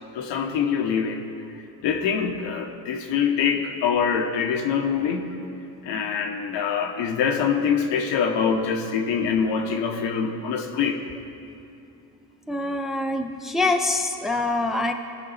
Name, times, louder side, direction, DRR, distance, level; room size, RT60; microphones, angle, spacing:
voice 1, 0.1-1.2 1.8-5.3 5.8-11.0, left 6 dB, 70° left, 4 dB, 1.2 m, -24 dB
voice 2, 12.5-14.9, left 2 dB, ahead, 4 dB, 0.7 m, -25 dB
16.0 x 5.4 x 4.1 m, 2.8 s
supercardioid pair, 70°, 45 cm